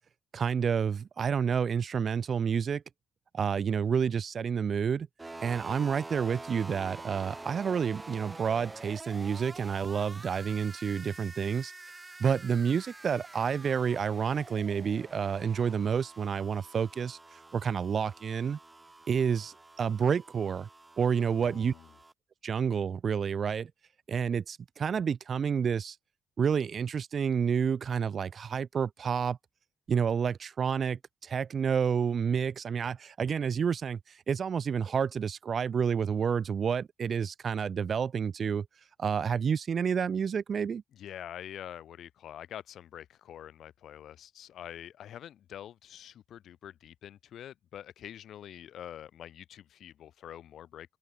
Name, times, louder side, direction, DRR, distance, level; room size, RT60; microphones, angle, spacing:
voice 1, 0.3-2.8 3.3-5.1 5.4-11.7 12.2-18.6 19.1-20.7 21.0-21.7 22.4-23.7 24.1-26.0 26.4-29.4 29.9-34.0 34.3-38.7 39.0-40.8, right 7 dB, 50° right, 0.3 m, -29 dB
sound 1, 5.2-22.1, right 2 dB, 20° right, 2.0 m, -47 dB
voice 2, 21.4-21.9 40.9-51.0, left 10 dB, 70° left, 5.4 m, -46 dB
open air
cardioid pair, 90°, 0 cm